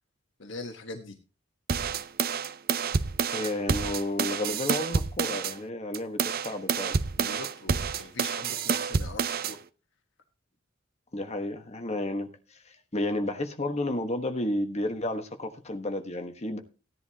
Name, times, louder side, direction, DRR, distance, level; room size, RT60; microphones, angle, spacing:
voice 1, 0.4-1.2 7.2-9.6, left 3 dB, 65° left, 1.4 m, -42 dB
sound 1, 1.7-5.6 5.9-9.6, right 6 dB, 50° right, 0.6 m, -28 dB
voice 2, 3.3-6.9 11.1-16.6, left 1 dB, 35° left, 1.3 m, -32 dB
15.5 x 10.5 x 2.9 m
head